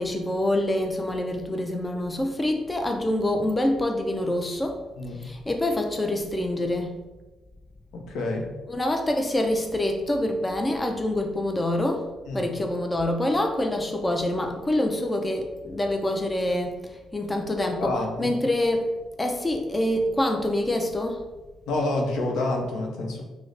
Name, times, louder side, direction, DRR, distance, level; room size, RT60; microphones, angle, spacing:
voice 1, 0.0-4.8 5.2-6.9 8.7-12.1 12.3-16.7 17.1-18.9 19.2-21.2, left 1 dB, 20° left, 3 dB, 0.4 m, -26 dB
voice 2, 7.9-8.5 12.3-12.5 17.8-18.3 21.7-23.2, left 2 dB, 80° left, 1 dB, 0.6 m, -28 dB
3.1 x 2.0 x 3.8 m, 1.2 s
cardioid pair, 90°, 0 cm